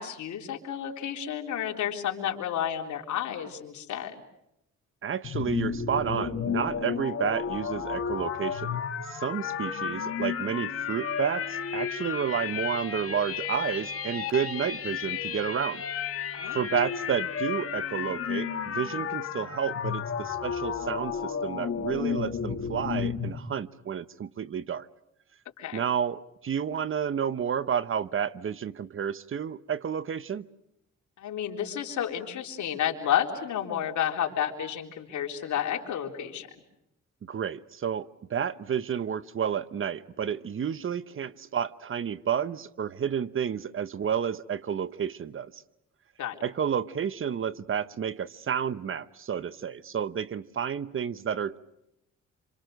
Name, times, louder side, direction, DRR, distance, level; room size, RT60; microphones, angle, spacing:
voice 1, 0.0-4.2 16.3-16.6 25.6-25.8 31.2-36.5 46.2-46.4, left 9 dB, 70° left, 2 dB, 3.8 m, -31 dB
voice 2, 5.0-8.8 9.1-15.8 16.5-24.9 25.7-30.5 37.2-45.6 46.4-51.6, right 8 dB, 45° right, 16 dB, 0.9 m, -31 dB
sound 1, 5.2-23.4, left 7 dB, 50° left, 2.4 m, -32 dB
27.5 x 26.5 x 6.5 m, 0.83 s
cardioid pair, 90°, 30 cm